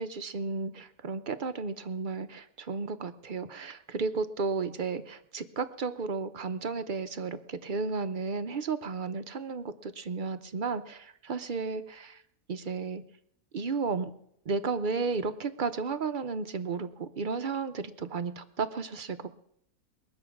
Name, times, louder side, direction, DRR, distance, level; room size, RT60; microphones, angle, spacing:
voice 1, 0.0-12.2 12.5-13.0 13.5-14.1 14.5-19.3, right 4 dB, 55° right, 10 dB, 0.5 m, -33 dB
22.0 x 7.7 x 5.9 m, 0.73 s
omnidirectional pair, 1.6 m